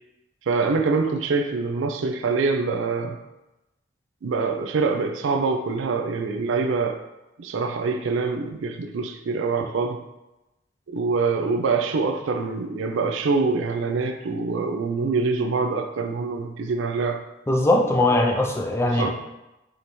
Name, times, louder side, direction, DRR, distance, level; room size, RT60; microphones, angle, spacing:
voice 1, 0.5-3.2 4.2-7.0 7.4-10.0 10.9-17.2 18.9-19.1, right 4 dB, 75° right, 5 dB, 0.4 m, -25 dB
voice 2, 17.5-19.1, left 1 dB, 15° left, 1 dB, 0.3 m, -20 dB
4.9 x 2.7 x 3.0 m, 0.97 s
head